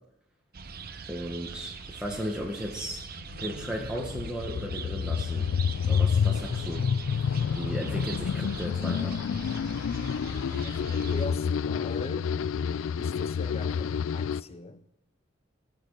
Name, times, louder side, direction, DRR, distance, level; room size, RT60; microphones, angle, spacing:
sound 1, 0.5-11.3, right 5 dB, 50° right, 0.8 m, -42 dB
voice 1, 1.1-3.0 3.4-5.5 5.8-6.9 7.5-9.2, equal, 5° right, 1.1 m, -35 dB
sound 2, 3.1-14.4, left 6 dB, 75° left, 0.3 m, -29 dB
voice 2, 10.6-12.3 13.0-14.8, left 2 dB, 30° left, 0.6 m, -40 dB
18.5 x 6.5 x 5.3 m
head